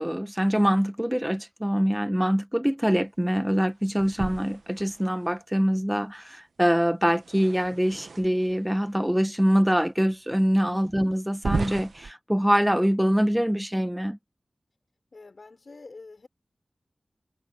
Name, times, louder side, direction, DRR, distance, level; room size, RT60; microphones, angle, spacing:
voice 1, 0.0-14.2, equal, 5° right, 0.7 m, -24 dB
sound 1, 4.0-5.3 7.1-8.6 9.3-9.4 10.1-10.2 11.3-12.1, right 4 dB, 90° right, 0.8 m, -34 dB
voice 2, 15.1-16.3, left 3 dB, 60° left, 5.0 m, -47 dB
wide cardioid pair, 70°, 0 cm